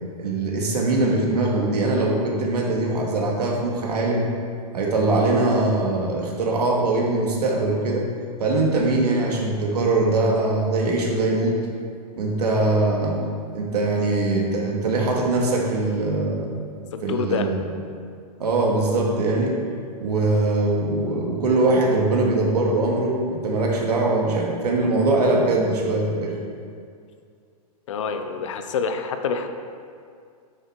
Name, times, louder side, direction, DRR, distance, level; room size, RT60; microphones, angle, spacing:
voice 1, 0.2-4.3 4.7-8.1 8.4-11.6 12.2-13.2 13.5-16.5 17.0-17.6 18.4-19.6 20.0-26.3, right 2 dB, 90° right, -1 dB, 2.0 m, -22 dB
voice 2, 16.9-17.5 27.9-29.5, left 5 dB, 50° left, 7 dB, 0.7 m, -26 dB
8.4 x 6.7 x 4.6 m, 2.3 s
hypercardioid pair, 175°, 20 cm